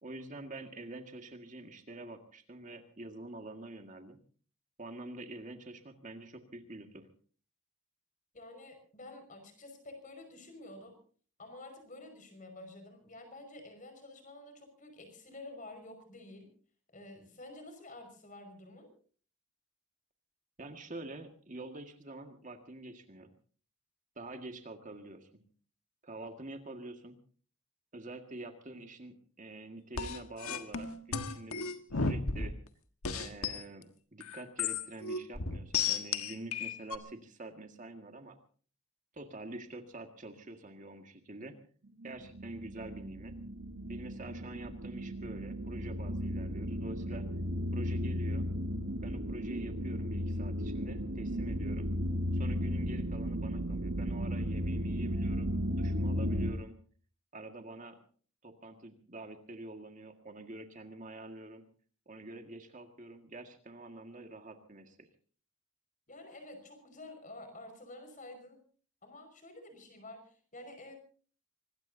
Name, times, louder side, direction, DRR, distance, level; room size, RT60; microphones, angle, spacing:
voice 1, 0.0-4.2 4.8-7.1 20.6-23.3 24.2-25.3 26.0-27.2 27.9-31.6 31.9-32.5 33.1-38.4 39.1-41.5 42.0-43.3 43.9-47.2 47.7-48.5 49.0-51.9 52.3-55.5 55.8-56.7 57.3-58.0 58.4-61.6 62.1-65.1, right 2 dB, 35° right, 5 dB, 1.8 m, -46 dB
voice 2, 8.3-11.0 11.4-16.5 16.9-18.9 66.1-68.6 69.0-71.0, left 2 dB, 35° left, 7 dB, 5.5 m, -50 dB
sound 1, 30.0-32.7 33.0-33.6 34.2-37.0, left 5 dB, 85° left, 1.5 m, -34 dB
sound 2, 41.9-56.5, equal, 70° right, 2.5 m, -35 dB
25.0 x 20.5 x 2.7 m, 0.43 s
head